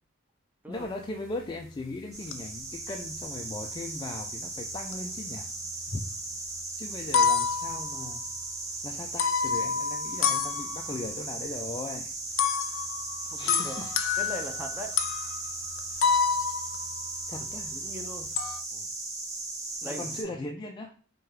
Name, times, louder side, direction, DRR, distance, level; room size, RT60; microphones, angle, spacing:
voice 1, 0.7-5.5 5.9-6.1 6.8-8.3 8.8-12.1 13.4-13.9 17.3-17.8 19.8-20.9, left 2 dB, 25° left, 3 dB, 0.3 m, -38 dB
sound 1, 0.8-0.9 1.3-1.8 2.3-2.8 3.1-3.7 4.7-5.1 5.4-6.2 6.6-6.7 6.9-8.4 9.2-11.1 12.4-17.6 17.9-18.6, left 6 dB, 90° left, 0.5 m, -29 dB
sound 2, 2.1-20.2, right 2 dB, 35° right, 1.3 m, -37 dB
voice 2, 13.3-13.9 14.2-15.0 17.7-18.4 18.7-18.9 19.8-20.3, equal, 10° right, 3 dB, 0.6 m, -40 dB
4.5 x 2.3 x 4.7 m, 0.42 s
head